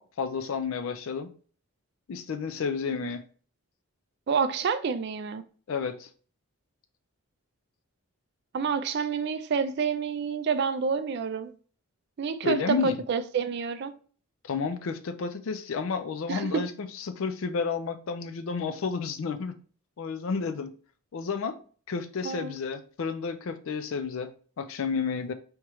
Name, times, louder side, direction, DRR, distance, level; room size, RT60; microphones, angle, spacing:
voice 1, 0.2-1.3 2.1-3.2 5.7-6.1 12.4-13.0 14.4-19.5 20.0-20.7 21.1-21.6 21.9-25.3, left 5 dB, 65° left, 0.4 m, -31 dB
voice 2, 4.3-5.4 8.5-11.5 12.2-13.9 16.3-16.6 22.2-22.6, right 6 dB, 50° right, 0.3 m, -28 dB
3.6 x 3.0 x 3.0 m
head